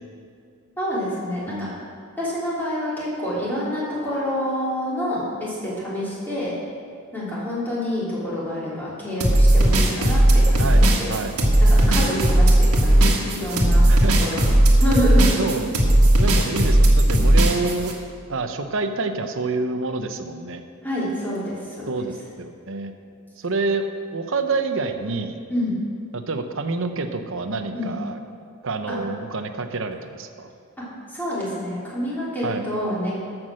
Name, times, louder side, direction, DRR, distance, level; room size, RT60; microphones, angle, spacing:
voice 1, 0.8-1.7 2.2-6.5 7.1-11.2 11.6-13.8 14.2-15.6 20.8-22.1 25.5-25.7 27.7-27.9 28.9-29.0 31.1-33.1, equal, 10° left, -8 dB, 3.4 m, -27 dB
voice 2, 1.5-1.8 10.6-10.8 11.1-11.3 13.9-14.2 15.4-15.7 16.2-17.9 18.3-20.6 21.9-22.9 23.4-23.8 24.1-25.4 26.1-28.2 28.6-30.5 32.4-32.6, right 3 dB, 60° right, 7 dB, 0.8 m, -27 dB
sound 1, 9.2-17.9, right 1 dB, 90° right, 1.7 m, -16 dB
14.0 x 6.1 x 6.4 m, 2.3 s
head